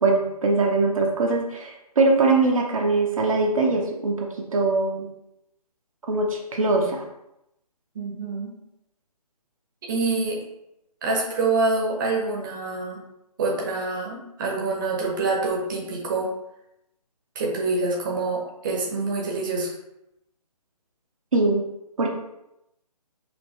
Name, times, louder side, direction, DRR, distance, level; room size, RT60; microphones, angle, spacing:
voice 1, 0.0-5.1 6.1-7.0 21.3-21.6 22.0-22.1, right 3 dB, 55° right, 0 dB, 0.9 m, -22 dB
voice 2, 7.9-8.6 9.8-10.4 11.0-13.0 13.4-16.3 17.3-19.7, right 3 dB, 30° right, -2 dB, 1.0 m, -26 dB
5.2 x 2.9 x 3.1 m, 0.85 s
figure-of-eight pair, 145°, 21 cm